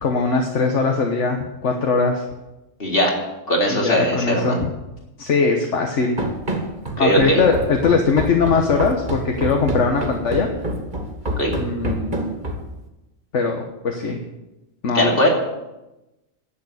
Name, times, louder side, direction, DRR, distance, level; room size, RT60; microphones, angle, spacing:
voice 1, 0.0-2.2 3.7-4.6 5.2-6.2 7.0-10.5 11.6-12.4 13.3-14.2 14.8-15.1, left 4 dB, 65° left, 3 dB, 1.5 m, -20 dB
voice 2, 2.8-3.1 3.5-4.6 7.0-7.4 11.4-11.5 14.9-15.3, equal, 45° left, -1 dB, 3.0 m, -19 dB
Run, 6.2-12.8, right 2 dB, 35° right, 2.0 m, -27 dB
11.5 x 8.5 x 8.1 m, 0.99 s
omnidirectional pair, 1.3 m